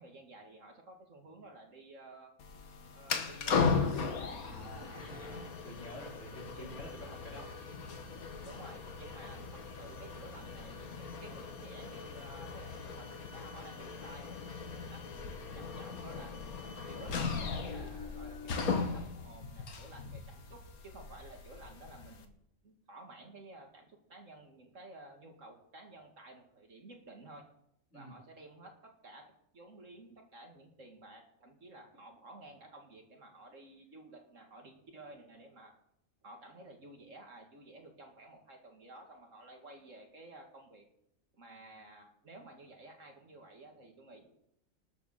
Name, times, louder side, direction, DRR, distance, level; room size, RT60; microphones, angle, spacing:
voice 1, 0.0-2.3 2.9-4.6 6.5-6.7 8.4-14.4 14.9-15.0 15.5-22.4 22.6-27.4 27.9-35.7 36.2-40.9 41.3-44.2, right 2 dB, 55° right, 3 dB, 2.4 m, -53 dB
sound 1, 2.4-22.3, left 5 dB, 70° left, 1.8 m, -38 dB
voice 2, 4.4-8.0 27.9-28.1, equal, 55° left, -3 dB, 4.9 m, -49 dB
19.5 x 6.9 x 6.6 m, 0.78 s
omnidirectional pair, 1.6 m